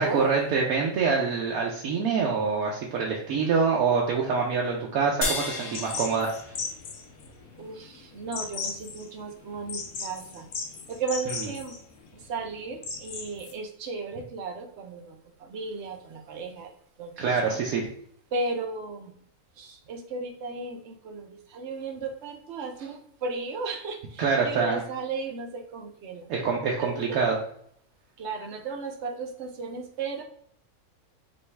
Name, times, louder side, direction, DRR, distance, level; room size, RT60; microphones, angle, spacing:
voice 1, 0.0-6.3 17.2-17.9 24.2-24.8 26.3-27.4, right 5 dB, 75° right, -1 dB, 1.1 m, -25 dB
sound 1, 5.2-7.8, left 2 dB, 30° left, 0.6 m, -34 dB
sound 2, 5.7-13.5, left 5 dB, 85° left, 1.2 m, -37 dB
voice 2, 7.6-10.5 10.9-11.7 12.1-16.7 17.0-17.6 18.3-19.1 19.6-26.3 26.8-27.2 28.2-30.2, right 4 dB, 55° right, 4 dB, 0.9 m, -35 dB
5.4 x 2.6 x 3.3 m, 0.66 s
omnidirectional pair, 1.5 m